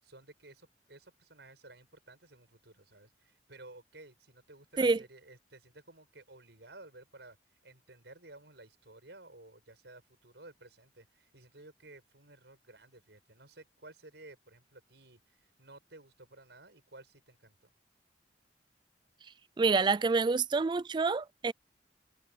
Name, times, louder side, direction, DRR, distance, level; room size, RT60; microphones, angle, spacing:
voice 1, 0.0-7.4 7.6-17.7, right 2 dB, 75° right, 6.4 m, -55 dB
voice 2, 19.6-21.5, right 4 dB, 25° right, 0.3 m, -27 dB
head